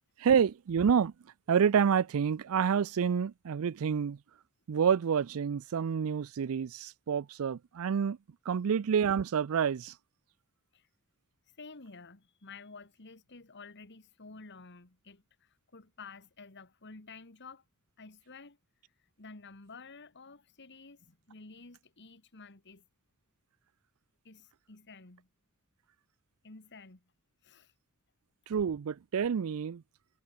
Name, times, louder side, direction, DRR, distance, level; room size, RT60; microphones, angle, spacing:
voice 1, 0.2-1.1 1.5-4.2 4.7-8.2 8.5-9.9 28.5-29.8, right 7 dB, 70° right, 0.4 m, -28 dB
voice 2, 11.5-17.6 18.0-18.6 19.2-22.8 24.2-25.3 26.4-27.0 27.4-27.7, left 4 dB, 50° left, 1.9 m, -51 dB
head